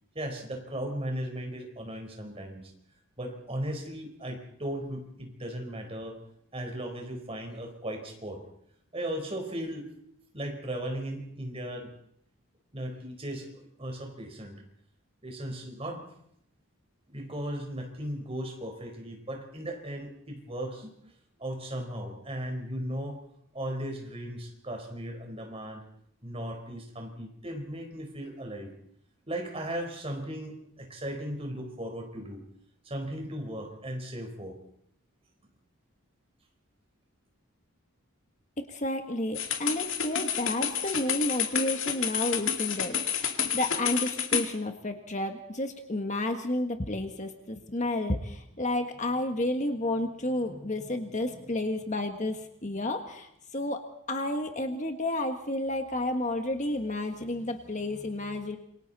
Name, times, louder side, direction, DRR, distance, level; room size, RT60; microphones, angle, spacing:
voice 1, 0.1-2.7 3.2-6.2 6.5-8.4 8.9-9.9 10.3-11.9 12.7-14.6 15.2-16.0 17.1-20.9 21.4-23.2 23.5-25.8 26.2-28.7 29.3-32.4 32.8-34.6, right 1 dB, 25° right, 3 dB, 4.3 m, -37 dB
voice 2, 38.6-58.6, left 1 dB, 35° left, 5 dB, 1.5 m, -31 dB
sound 1, 39.3-44.5, left 8 dB, 60° left, 2.2 m, -30 dB
27.5 x 24.0 x 4.2 m, 0.72 s
head